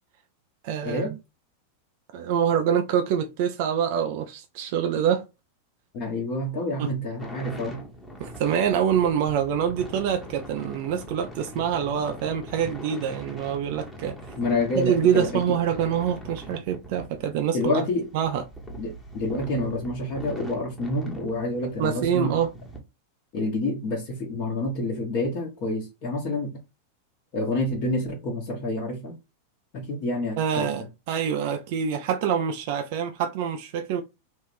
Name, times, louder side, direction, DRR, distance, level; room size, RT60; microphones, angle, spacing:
voice 1, 0.6-1.2 2.1-5.3 6.8-6.9 8.2-14.2 14.8-17.8 18.1-18.4 21.8-22.5 30.4-34.0, right 8 dB, 50° right, 0.4 m, -25 dB
voice 2, 5.9-7.8 14.4-15.6 17.5-18.1 18.8-22.4 23.3-26.6 27.3-29.2 29.7-30.7, left 2 dB, 40° left, 1.1 m, -28 dB
sound 1, 7.2-22.8, equal, 5° left, 1.1 m, -42 dB
3.5 x 2.5 x 3.2 m
figure-of-eight pair, 90°, 0 cm